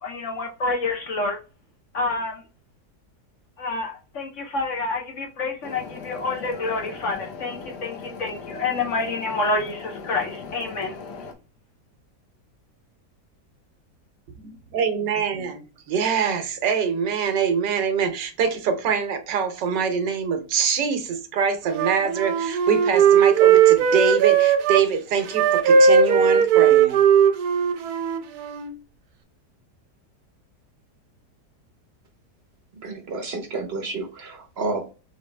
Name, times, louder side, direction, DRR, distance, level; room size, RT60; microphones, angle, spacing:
voice 1, 0.0-1.4 1.9-2.4 3.6-11.0, left 3 dB, 60° left, 0.9 m, -28 dB
sound 1, 5.6-11.3, left 4 dB, 75° left, 1.4 m, -39 dB
voice 2, 14.4-27.0, right 6 dB, 85° right, 1.5 m, -24 dB
Wind instrument woodwind instrument, 21.7-24.8 25.3-28.7, right 7 dB, 70° right, 1.1 m, -18 dB
voice 3, 32.8-34.9, right 3 dB, 50° right, 0.8 m, -30 dB
4.0 x 3.3 x 3.2 m
omnidirectional pair, 1.8 m